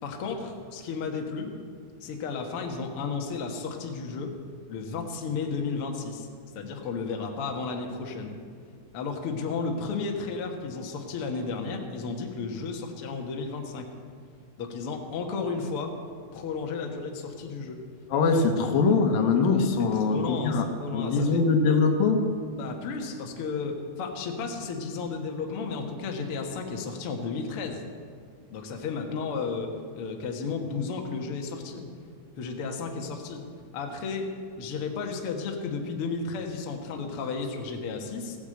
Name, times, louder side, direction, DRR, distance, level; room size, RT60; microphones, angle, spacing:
voice 1, 0.0-1.6 2.0-4.3 4.7-6.3 6.5-8.3 8.9-13.9 14.6-15.9 16.3-17.8 19.8-21.4 22.5-27.8 28.5-31.8 32.4-33.4 33.7-34.3 34.6-38.4, left 4 dB, 55° left, 2 dB, 1.8 m, -33 dB
voice 2, 18.1-20.7 20.9-22.2, left 4 dB, 75° left, 5 dB, 2.8 m, -22 dB
15.5 x 10.0 x 7.8 m, 2.1 s
omnidirectional pair, 4.2 m